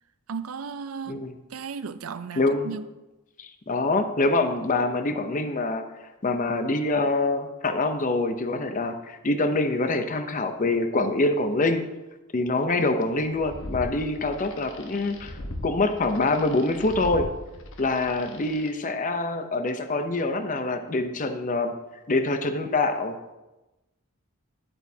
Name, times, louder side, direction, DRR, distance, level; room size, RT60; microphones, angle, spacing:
voice 1, 0.3-1.2 1.5-2.8, right 5 dB, 75° right, 0.5 m, -35 dB
voice 2, 2.4-2.7 3.4-5.8 6.2-11.8 12.3-15.3 15.6-17.3 17.8-21.7 22.1-23.2, left 2 dB, 40° left, 0.7 m, -25 dB
sound 1, 13.3-18.7, left 1 dB, 60° left, 1.1 m, -40 dB
10.5 x 8.8 x 2.8 m
head